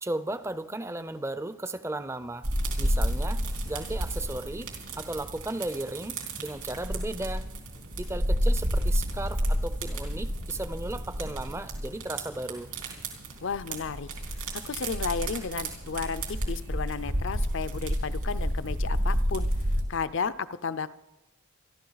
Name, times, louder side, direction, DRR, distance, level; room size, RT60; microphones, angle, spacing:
voice 1, 0.0-2.5 2.8-4.7 5.0-7.5 8.0-12.7, right 2 dB, 10° right, 13 dB, 0.5 m, -35 dB
sound 1, 2.4-19.8, equal, 75° right, 3.4 m, -30 dB
voice 2, 13.4-19.5 19.9-20.9, left 5 dB, 55° left, 15 dB, 0.5 m, -33 dB
27.5 x 12.0 x 4.0 m, 0.98 s
head